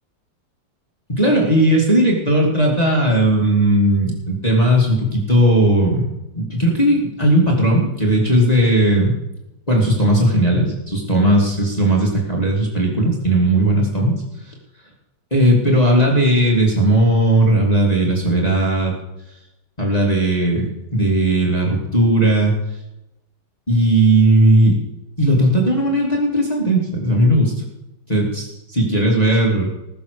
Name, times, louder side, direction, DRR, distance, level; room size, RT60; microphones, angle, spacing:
voice 1, 1.1-6.1 6.3-9.2 9.7-14.2 15.3-18.9 19.8-22.5 23.7-24.8 25.2-27.5 28.1-29.7, right 1 dB, 20° left, -2 dB, 2.7 m, -16 dB
19.5 x 7.2 x 6.9 m, 0.92 s
omnidirectional pair, 2.0 m